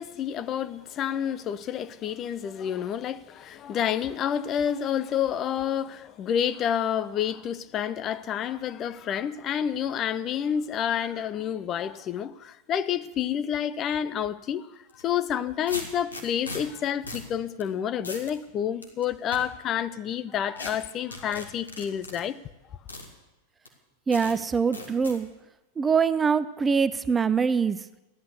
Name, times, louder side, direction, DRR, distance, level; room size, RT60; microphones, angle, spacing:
voice 1, 0.0-14.7 14.9-22.4, left 9 dB, 30° left, 0.6 m, -29 dB
sound 1, 14.9-15.0 15.7-16.6 17.1-17.3 17.6-17.7 18.0-18.3 18.8-19.4 20.6-20.7 21.1-22.2 22.9-23.1 23.6-23.7 24.1-24.3 24.7-25.2, left 2 dB, 80° left, 2.2 m, -38 dB
voice 2, 24.1-25.3 25.8-27.8, right 6 dB, 15° right, 0.5 m, -23 dB
15.0 x 11.5 x 6.8 m
figure-of-eight pair, 90°, 0 cm